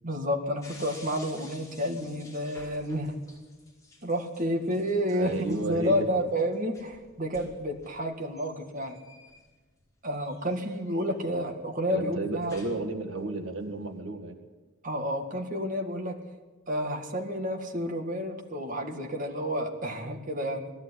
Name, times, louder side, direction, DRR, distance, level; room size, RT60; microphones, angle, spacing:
voice 1, 0.0-3.1 4.0-9.0 10.0-12.6 14.8-16.2 16.7-20.7, equal, 40° right, 3 dB, 1.9 m, -30 dB
sound 1, 0.6-9.8 10.1-11.3 12.1-13.0 13.4-13.9, left 3 dB, 15° left, 5.1 m, -51 dB
voice 2, 5.1-6.2 11.9-14.4, right 2 dB, 70° right, 4 dB, 1.9 m, -33 dB
19.5 x 15.0 x 9.8 m, 1.3 s
head